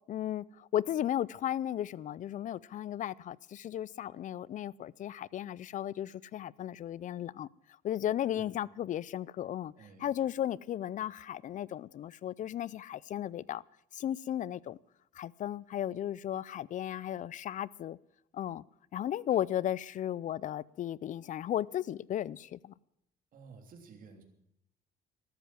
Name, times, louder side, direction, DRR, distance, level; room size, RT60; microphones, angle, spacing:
voice 1, 0.1-7.5 7.8-9.7 10.0-13.6 13.9-14.8 15.1-18.0 18.3-18.6 18.9-22.7, left 11 dB, 50° left, 0.5 m, -35 dB
voice 2, 9.7-10.1 23.3-24.2, right 5 dB, 55° right, 3.3 m, -52 dB
13.5 x 12.5 x 7.6 m
cardioid pair, 110°, 17 cm